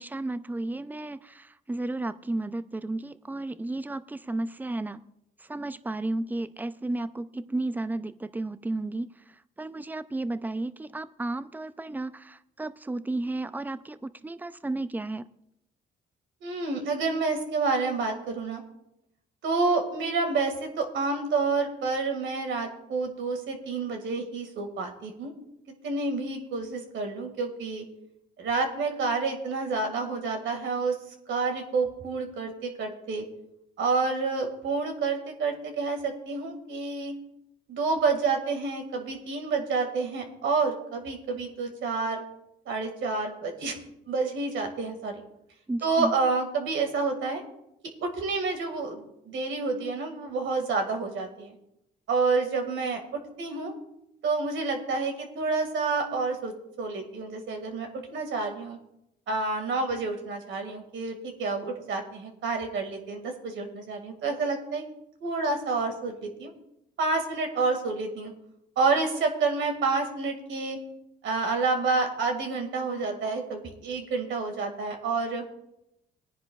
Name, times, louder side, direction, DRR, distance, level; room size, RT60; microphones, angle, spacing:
voice 1, 0.0-5.0 5.5-9.1 9.6-15.3 45.7-46.1, right 2 dB, 10° right, 0.5 m, -33 dB
voice 2, 16.4-18.6 19.4-25.3 25.8-27.8 28.4-31.0 31.3-33.2 33.8-37.1 37.7-42.2 42.7-43.8 44.1-45.2 45.8-47.4 48.0-51.5 52.1-53.0 53.4-53.7 54.2-58.8 59.3-64.8 65.2-66.5 67.0-68.3 68.8-70.8 71.2-75.4, right 4 dB, 75° right, 2.1 m, -29 dB
20.0 x 10.0 x 2.4 m
cardioid pair, 90°, 20 cm